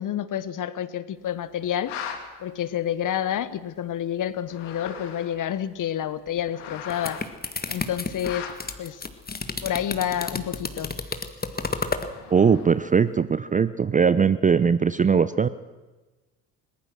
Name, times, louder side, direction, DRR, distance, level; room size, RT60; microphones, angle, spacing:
voice 1, 0.0-2.0 2.4-7.2 7.7-8.5 8.8-9.0 9.6-11.0, left 10 dB, 40° left, 17 dB, 1.2 m, -29 dB
sound 1, 1.7-2.2 3.3-3.4 4.4-5.5 6.3-7.3 8.2-8.7 9.9-10.3 11.8-12.9, left 8 dB, 55° left, 3.0 m, -38 dB
sound 2, 6.7-12.1, left 4 dB, 20° left, 1.9 m, -31 dB
voice 2, 12.3-15.5, right 6 dB, 15° right, 15 dB, 0.6 m, -20 dB
21.5 x 20.0 x 6.2 m, 1.2 s
figure-of-eight pair, 55°, 49 cm